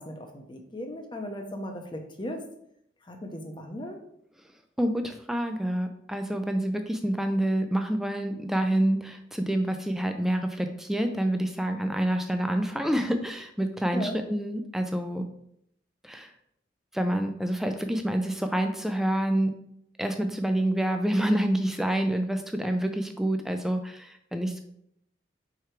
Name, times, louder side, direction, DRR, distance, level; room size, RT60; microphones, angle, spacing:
voice 1, 0.0-2.4 3.0-4.0 13.9-14.2, equal, 25° left, 4 dB, 0.8 m, -37 dB
voice 2, 4.8-15.3 16.0-16.3 16.9-19.5 20.0-24.6, right 1 dB, ahead, 6 dB, 0.3 m, -27 dB
4.8 x 4.6 x 4.5 m, 0.73 s
head